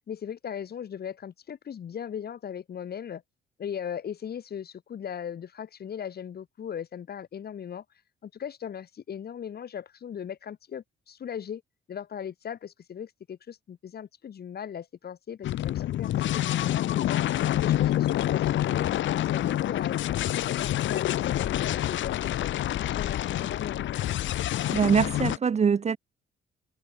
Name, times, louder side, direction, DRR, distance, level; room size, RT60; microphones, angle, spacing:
voice 1, 0.1-3.2 3.6-7.8 8.2-11.6 11.9-17.2 17.6-22.5 22.8-24.2, left 8 dB, 50° left, 1.8 m, -38 dB
sound 1, 15.4-25.4, left 13 dB, 70° left, 1.0 m, -27 dB
voice 2, 24.7-26.0, right 6 dB, 35° right, 0.7 m, -23 dB
cardioid pair, 90°, 20 cm